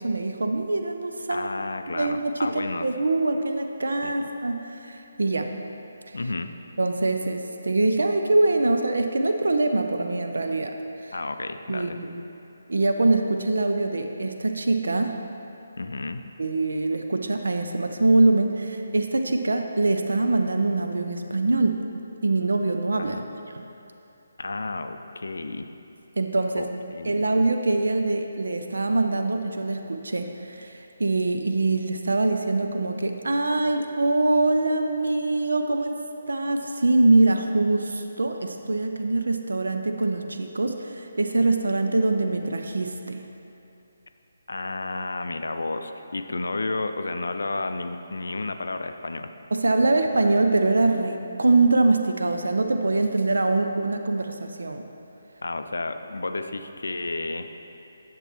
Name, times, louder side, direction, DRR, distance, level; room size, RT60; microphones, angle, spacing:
voice 1, 0.0-1.5 1.9-5.5 6.1-6.2 6.8-10.8 11.0-11.1 11.7-12.2 12.7-15.2 16.4-21.8 22.2-23.2 23.5-23.6 26.2-26.7 27.0-36.0 36.3-43.2 49.5-54.8, right 2 dB, 65° right, 5 dB, 0.4 m, -23 dB
voice 2, 1.3-2.9 4.0-4.1 6.1-6.5 11.1-12.0 15.8-16.2 23.0-23.2 24.4-25.7 26.6-27.2 44.5-49.3 55.4-57.5, left 3 dB, 65° left, 8 dB, 0.4 m, -31 dB
9.8 x 6.8 x 3.0 m, 2.8 s
figure-of-eight pair, 145°, 0 cm